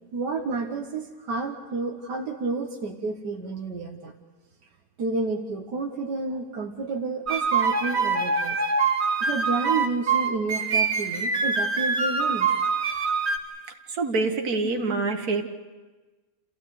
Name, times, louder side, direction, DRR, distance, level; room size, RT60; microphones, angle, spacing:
voice 1, 0.1-4.1 5.0-8.6 9.2-12.5, right 3 dB, 80° right, 3 dB, 1.9 m, -30 dB
sound 1, 7.3-13.4, right 4 dB, 45° right, 1.4 m, -24 dB
voice 2, 13.9-15.4, right 3 dB, 60° right, 5 dB, 2.2 m, -25 dB
28.0 x 15.5 x 9.4 m, 1.2 s
omnidirectional pair, 1.8 m